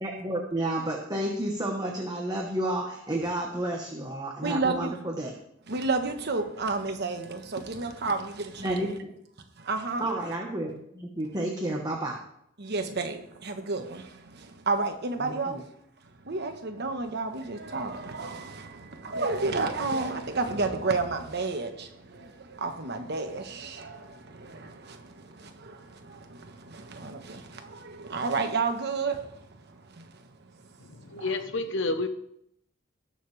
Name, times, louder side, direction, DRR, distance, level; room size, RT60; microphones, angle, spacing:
voice 1, 0.0-5.3 8.6-9.1 10.0-12.2 15.2-15.6, right 1 dB, 20° right, 1.3 m, -31 dB
voice 2, 4.4-4.9 5.7-8.9 9.6-10.1 12.6-15.6 16.2-30.5 31.1-31.4, right 3 dB, 55° right, 1.3 m, -32 dB
voice 3, 31.1-32.1, left 2 dB, 65° left, 1.1 m, -29 dB
19.5 x 6.6 x 3.4 m
head